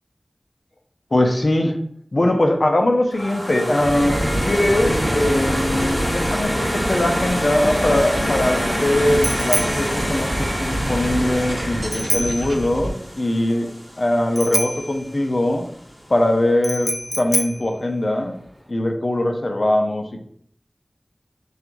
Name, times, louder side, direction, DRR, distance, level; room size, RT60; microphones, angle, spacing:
voice 1, 1.1-1.8 2.1-13.7 14.0-15.7 16.1-18.4 18.7-20.2, left 1 dB, 55° left, 3 dB, 0.6 m, -21 dB
sound 1, 3.1-14.1, equal, 35° left, 1.7 m, -26 dB
sound 2, 3.8-12.9, right 1 dB, 55° right, 0.6 m, -28 dB
Bicycle bell, 7.6-18.7, equal, 5° left, 0.3 m, -29 dB
5.8 x 2.4 x 2.6 m, 0.66 s
wide cardioid pair, 55°, 0 cm